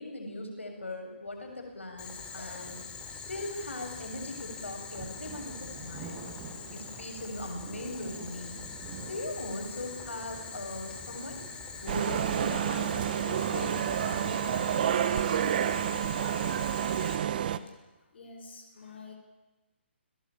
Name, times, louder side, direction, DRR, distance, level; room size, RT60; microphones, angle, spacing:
voice 1, 0.0-2.8 3.3-6.2 6.7-8.6 9.0-11.4 11.8-15.3, left 1 dB, 90° left, 3 dB, 7.2 m, -40 dB
sound 1, 1.3-14.5, right 5 dB, 30° right, 5.8 m, -49 dB
Boiling, 2.0-17.2, left 5 dB, 15° left, 3.9 m, -43 dB
sound 2, 11.9-17.6, right 10 dB, 50° right, 1.5 m, -29 dB
voice 2, 18.0-19.1, left 4 dB, 60° left, 1 dB, 6.5 m, -48 dB
29.5 x 19.0 x 9.1 m, 1.1 s
hypercardioid pair, 140°, 6 cm